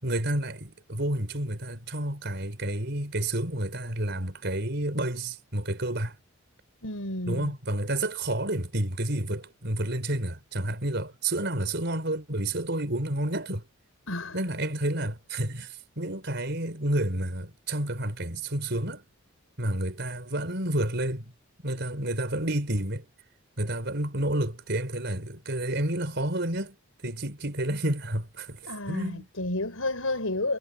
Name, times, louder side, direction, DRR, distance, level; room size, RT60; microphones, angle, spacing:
voice 1, 0.0-6.2 7.3-13.6 14.3-19.0 19.6-21.3 21.6-23.1 23.6-26.8 27.0-29.3, right 1 dB, 55° right, 5.2 m, -30 dB
voice 2, 6.8-7.5 14.1-14.4 28.7-30.6, left 2 dB, 85° left, 6.4 m, -31 dB
head